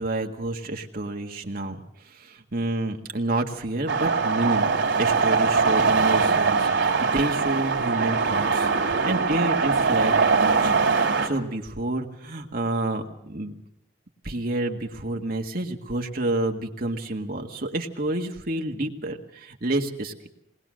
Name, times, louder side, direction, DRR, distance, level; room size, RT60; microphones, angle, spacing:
voice 1, 0.0-1.8 2.1-4.7 5.0-10.9 11.2-13.6 14.2-20.3, right 2 dB, 50° right, 3 dB, 1.8 m, -29 dB
sound 1, 3.9-11.3, right 5 dB, 85° right, 2.6 m, -22 dB
21.0 x 20.0 x 6.4 m, 0.75 s
head